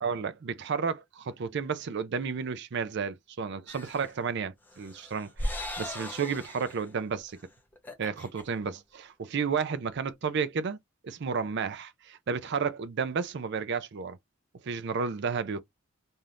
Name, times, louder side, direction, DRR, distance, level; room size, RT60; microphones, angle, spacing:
voice 1, 0.0-7.4 8.0-10.8 11.0-14.2 14.6-15.6, right 5 dB, 55° right, 0.4 m, -32 dB
sound 1, 3.7-4.1 4.7-6.9 7.3-7.4 7.7-8.4, left 1 dB, 10° left, 0.6 m, -38 dB
2.7 x 2.4 x 3.3 m
head